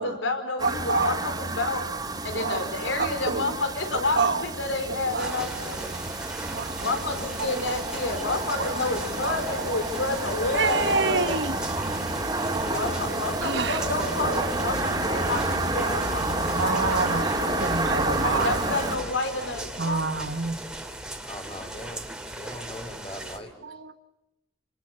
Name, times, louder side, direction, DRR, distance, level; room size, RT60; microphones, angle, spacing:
voice 1, 0.0-1.8 2.2-5.9 6.8-11.3 12.7-17.6 18.2-20.0, left 2 dB, 80° left, 8 dB, 4.9 m, -30 dB
sound 1, 0.6-19.0, right 2 dB, 20° right, 3.2 m, -30 dB
voice 2, 0.6-1.2 2.3-2.6 3.0-3.6 3.9-4.4 4.9-5.4 6.4-6.8 7.4-7.7 8.6-8.9 9.2-9.7 10.5-11.5 13.4-13.9 16.6-18.6 19.8-20.6 23.6-24.0, right 3 dB, 65° right, 10 dB, 1.5 m, -28 dB
sound 2, 5.2-23.4, right 1 dB, 5° right, 2.6 m, -38 dB
voice 3, 21.2-22.1 22.3-23.5, left 1 dB, 30° left, 4 dB, 3.7 m, -40 dB
29.0 x 28.0 x 7.0 m, 0.93 s
head